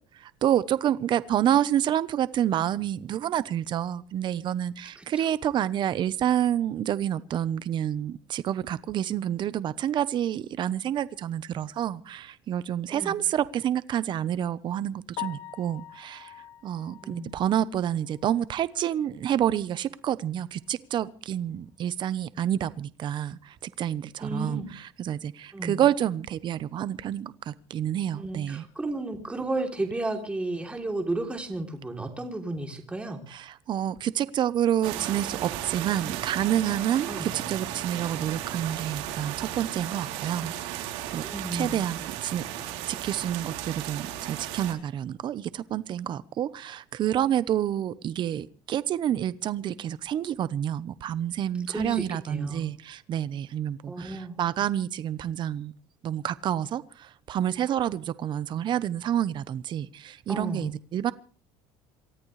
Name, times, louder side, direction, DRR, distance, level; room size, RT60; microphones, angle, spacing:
voice 1, 0.2-16.3 16.6-28.6 33.3-41.2 41.5-42.4 42.9-55.7 56.0-61.1, right 10 dB, 45° right, 1.0 m, -28 dB
voice 2, 4.9-5.2 12.9-13.1 17.0-17.3 24.2-24.7 25.5-25.8 28.2-33.2 37.1-37.3 41.2-41.8 51.7-52.7 53.9-54.4 60.3-60.7, right 2 dB, 10° right, 3.3 m, -33 dB
Piano, 15.1-19.1 19.5-19.6 20.1-20.2 20.5-20.6 23.7-23.8 32.3-32.5, left 13 dB, 85° left, 2.8 m, -43 dB
sound 1, 34.8-44.7, right 12 dB, 80° right, 3.5 m, -35 dB
28.0 x 13.5 x 3.3 m
cardioid pair, 125°, 11 cm